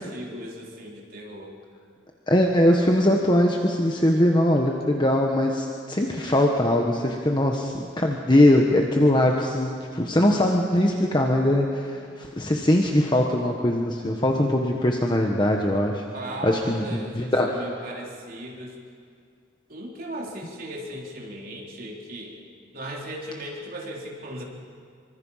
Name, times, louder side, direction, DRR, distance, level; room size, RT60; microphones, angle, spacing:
voice 1, 0.0-1.5 16.1-18.8 19.7-22.5 22.7-24.4, right 1 dB, 50° right, -2 dB, 3.8 m, -37 dB
voice 2, 2.3-16.0 16.4-17.6, left 1 dB, 25° left, 1 dB, 1.4 m, -21 dB
25.0 x 25.0 x 5.7 m, 2.2 s
head